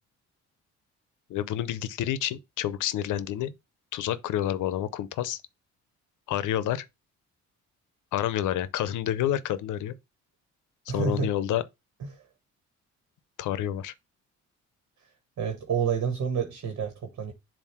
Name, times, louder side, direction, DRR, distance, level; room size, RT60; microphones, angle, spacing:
voice 1, 1.3-3.5 3.9-5.4 6.3-6.9 8.1-9.9 10.9-11.6 13.4-13.9, left 11 dB, 80° left, 0.7 m, -29 dB
voice 2, 10.9-11.3 12.0-12.2 15.4-17.3, right 6 dB, 65° right, 1.6 m, -29 dB
7.1 x 2.7 x 5.8 m
cardioid pair, 90°, 30 cm